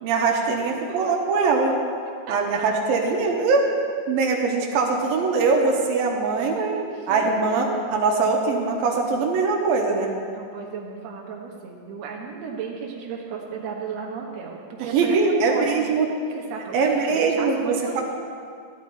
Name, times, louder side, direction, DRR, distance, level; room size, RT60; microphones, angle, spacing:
voice 1, 0.0-1.7 2.3-3.7 4.1-6.6 7.1-10.1 14.8-16.1 16.7-18.0, right 4 dB, 90° right, 0 dB, 3.0 m, -22 dB
voice 2, 0.6-1.1 2.3-2.6 6.6-7.5 10.3-15.9 16.3-18.0, right 6 dB, 55° right, -2 dB, 2.4 m, -34 dB
14.5 x 11.0 x 4.2 m, 2.2 s
omnidirectional pair, 4.1 m